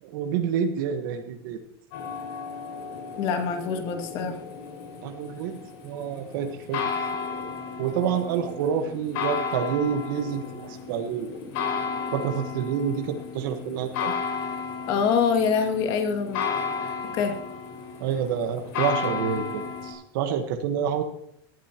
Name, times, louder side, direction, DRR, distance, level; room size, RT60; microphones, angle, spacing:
voice 1, 0.0-1.6 5.0-5.6 5.8-6.8 7.8-11.3 11.7-11.8 12.1-14.1 18.0-21.0, right 7 dB, 55° right, 5 dB, 1.3 m, -28 dB
sound 1, 1.9-19.9, left 5 dB, 55° left, 5.3 m, -33 dB
voice 2, 3.2-4.4 14.9-16.4 17.1-17.4, left 6 dB, 40° left, 5 dB, 2.1 m, -25 dB
18.5 x 12.0 x 3.0 m, 0.73 s
supercardioid pair, 165°, 13 cm